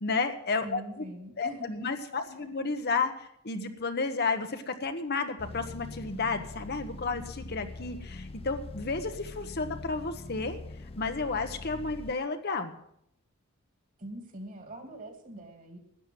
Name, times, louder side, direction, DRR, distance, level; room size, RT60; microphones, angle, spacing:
voice 1, 0.0-1.1 1.4-10.6 11.0-12.8, left 4 dB, 50° left, 7 dB, 1.1 m, -32 dB
voice 2, 0.6-1.9 2.2-2.6 14.0-15.8, right 1 dB, 40° right, 4 dB, 2.6 m, -43 dB
sound 1, 5.4-12.1, left 2 dB, 25° left, 0.4 m, -43 dB
12.5 x 9.2 x 7.7 m, 0.73 s
head